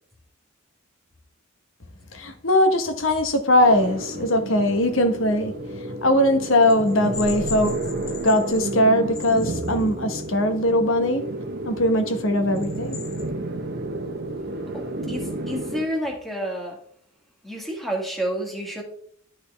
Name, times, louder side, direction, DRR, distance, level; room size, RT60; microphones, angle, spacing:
voice 1, 2.1-7.8 8.2-11.2 11.6-13.0, left 1 dB, 65° left, 1.1 m, -20 dB
sound 1, 3.6-15.8, right 2 dB, 50° right, 1.0 m, -31 dB
voice 2, 14.7-16.8 17.4-18.8, right 1 dB, ahead, 1.7 m, -30 dB
12.5 x 4.3 x 3.4 m
head